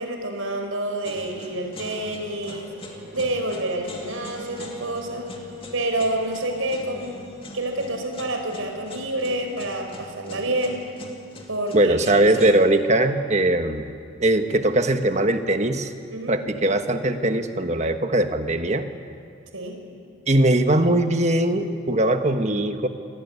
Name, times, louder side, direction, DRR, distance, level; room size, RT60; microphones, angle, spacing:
voice 1, 0.0-2.7 3.1-5.3 5.7-7.1 7.5-10.8 11.5-12.5 16.1-16.3 19.5-19.8, right 1 dB, 75° right, 4 dB, 4.8 m, -28 dB
sound 1, 1.0-12.5, left 2 dB, 25° left, 2.5 m, -42 dB
sound 2, 1.4-10.4, left 3 dB, 5° right, 7.8 m, -47 dB
voice 2, 11.7-13.9 14.2-15.9 16.3-18.8 20.3-22.9, right 1 dB, 35° right, 7 dB, 1.4 m, -20 dB
27.5 x 19.5 x 9.6 m, 2.3 s
head